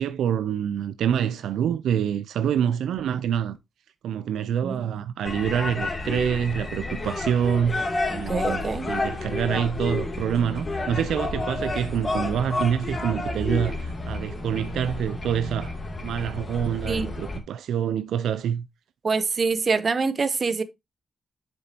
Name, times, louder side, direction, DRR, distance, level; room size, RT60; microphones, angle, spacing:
voice 1, 0.0-3.6 4.0-15.8 16.0-18.7, right 9 dB, 90° right, 0.4 m, -26 dB
voice 2, 4.6-5.0 8.1-8.9 16.9-17.1 19.0-20.6, right 4 dB, 45° right, 0.9 m, -25 dB
sound 1, 5.2-17.4, left 2 dB, 35° left, 2.5 m, -30 dB
7.5 x 7.0 x 2.8 m
cardioid pair, 75°, 0 cm